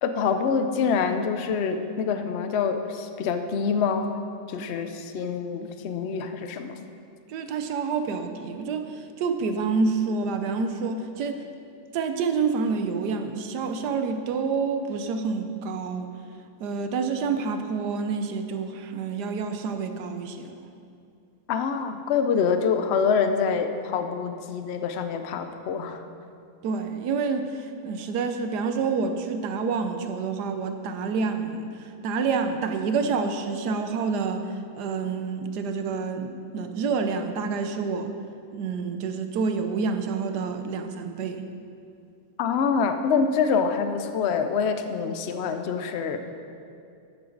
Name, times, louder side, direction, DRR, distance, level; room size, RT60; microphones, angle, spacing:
voice 1, 0.0-4.1 4.5-6.8 21.5-26.0 42.4-46.2, left 6 dB, 60° left, 8 dB, 0.7 m, -26 dB
voice 2, 7.3-8.9 9.2-11.4 11.9-16.1 16.6-20.6 26.6-31.7 32.0-34.4 34.8-38.1 38.5-41.4, right 5 dB, 75° right, 7 dB, 1.3 m, -28 dB
13.0 x 8.2 x 3.9 m, 2.5 s
omnidirectional pair, 1.8 m